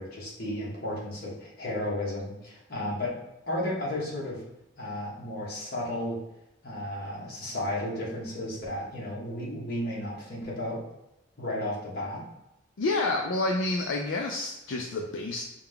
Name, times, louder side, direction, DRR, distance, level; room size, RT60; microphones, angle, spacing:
voice 1, 0.0-3.1 3.5-4.4 4.8-6.2 6.6-10.8 11.4-12.2, left 1 dB, 50° left, -5 dB, 1.4 m, -33 dB
voice 2, 12.8-15.4, left 2 dB, 70° left, 1 dB, 0.4 m, -29 dB
4.6 x 2.3 x 3.6 m, 0.91 s
head